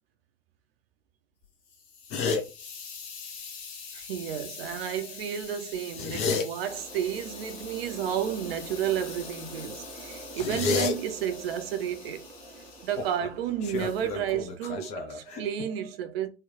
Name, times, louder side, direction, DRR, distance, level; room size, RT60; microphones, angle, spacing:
Hiss, 1.4-13.2 13.7-14.1, left 5 dB, 45° left, 1.1 m, -45 dB
sound 1, 2.1-2.4 5.8-6.5 10.4-10.9 13.0-13.3 13.6-15.7, left 4 dB, 20° left, 0.4 m, -29 dB
voice 1, 3.9-12.3 12.8-16.3, right 9 dB, 50° right, 0.7 m, -32 dB
sound 2, 6.6-14.4, right 3 dB, 90° right, 0.9 m, -46 dB
3.3 x 2.2 x 3.7 m
figure-of-eight pair, 100°, 38 cm